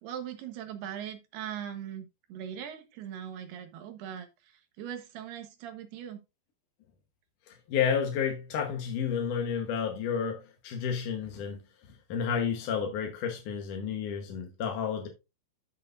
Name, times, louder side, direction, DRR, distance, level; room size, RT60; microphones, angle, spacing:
voice 1, 0.0-6.2, right 9 dB, 75° right, 3.2 m, -40 dB
voice 2, 7.5-11.6 12.1-15.1, left 7 dB, 65° left, 2.3 m, -31 dB
12.5 x 6.6 x 2.5 m
omnidirectional pair, 4.7 m